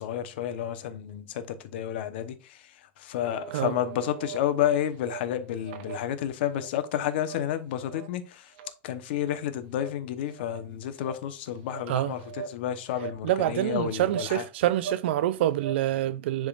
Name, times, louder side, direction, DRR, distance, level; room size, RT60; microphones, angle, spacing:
voice 1, 0.0-1.4 1.7-2.6 3.0-8.5 8.8-14.4, left 10 dB, 70° left, 1.0 m, -30 dB
sound 1, 3.2-4.4 4.9-5.2 5.6-6.7 7.1-7.4 7.8-8.1 8.5-8.7 9.1-9.4 9.8-9.9 10.3-10.6 11.0-11.1 11.6-11.8 12.2-12.6 12.9-13.6 14.1-14.3 14.6-15.0 15.3-15.8, right 7 dB, 55° right, 1.0 m, -40 dB
voice 2, 13.2-16.5, right 13 dB, 85° right, 0.5 m, -26 dB
10.5 x 3.7 x 2.5 m
supercardioid pair, 180°, 6 cm